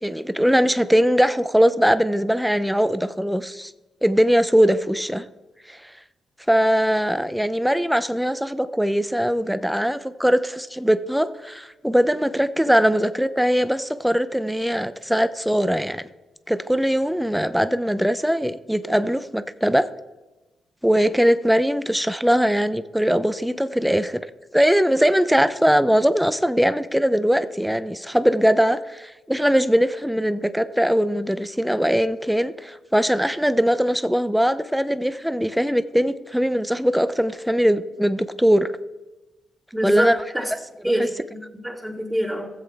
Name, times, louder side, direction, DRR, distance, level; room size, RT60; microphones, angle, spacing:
voice 1, 0.0-3.7 4.0-5.3 5.7-5.8 6.5-16.0 16.5-19.9 20.8-24.2 24.5-38.7 39.8-40.2 41.0-41.1, equal, 5° right, 13 dB, 0.6 m, -21 dB
voice 2, 39.7-40.5 40.8-42.5, equal, 20° right, -7 dB, 3.1 m, -26 dB
14.5 x 7.7 x 3.5 m, 1.1 s
supercardioid pair, 60°, 0 cm